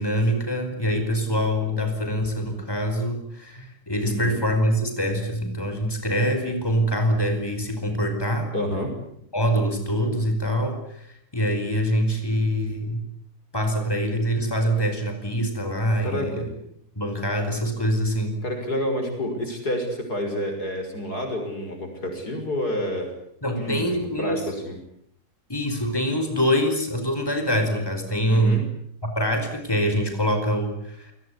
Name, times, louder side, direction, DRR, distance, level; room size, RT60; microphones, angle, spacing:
voice 1, 0.0-8.5 9.3-13.0 13.5-16.4 16.9-18.4 23.4-24.5 25.5-28.6 29.0-31.1, equal, 15° left, 6 dB, 5.1 m, -24 dB
voice 2, 4.0-4.4 8.5-8.9 16.0-16.5 18.4-23.1 23.6-24.8 28.3-28.6, left 1 dB, 80° left, 4 dB, 6.7 m, -29 dB
28.0 x 19.0 x 9.9 m, 0.73 s
omnidirectional pair, 1.7 m